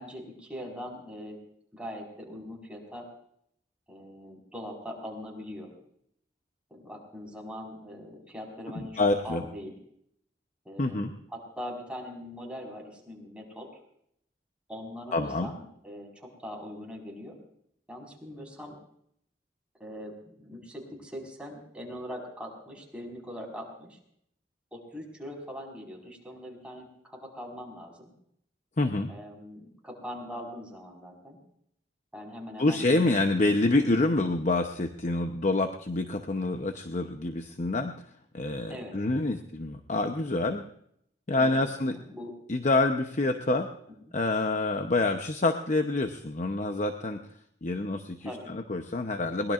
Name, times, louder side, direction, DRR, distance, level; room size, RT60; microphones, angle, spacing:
voice 1, 0.0-1.4 1.7-3.0 3.9-5.7 6.7-9.7 10.6-13.7 14.7-17.4 17.9-18.8 19.8-24.0 24.7-28.1 29.1-31.4 32.1-33.1 38.7-39.0 41.4-41.7 41.9-42.3 44.1-44.2 48.2-48.5, equal, 5° right, -2 dB, 4.7 m, -41 dB
voice 2, 8.8-9.4 10.8-11.1 15.1-15.5 28.8-29.1 32.6-37.9 38.3-40.6 41.3-42.0 42.5-43.7 44.1-47.2 47.6-49.5, left 2 dB, 45° left, 6 dB, 0.8 m, -27 dB
22.5 x 19.5 x 2.5 m, 0.71 s
head